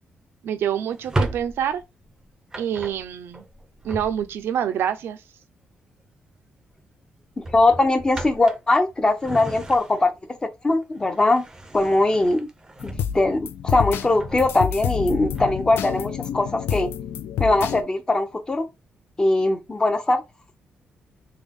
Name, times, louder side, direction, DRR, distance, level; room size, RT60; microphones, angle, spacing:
voice 1, 0.4-1.8 2.6-3.4 3.8-5.2, right 9 dB, 85° right, 0.5 m, -26 dB
Drawer open or close, 0.9-4.6 6.1-6.4 6.7-6.9 7.3-10.3 10.7-13.4 13.9-15.8, right 2 dB, 15° right, 0.5 m, -35 dB
voice 2, 7.4-10.1 10.6-11.4 11.7-12.5 12.8-16.9 17.4-18.7 19.2-20.2, left 2 dB, 20° left, 0.6 m, -21 dB
sound 1, 12.8-17.8, left 8 dB, 85° left, 0.3 m, -29 dB
3.3 x 2.2 x 3.6 m
cardioid pair, 135°, 4 cm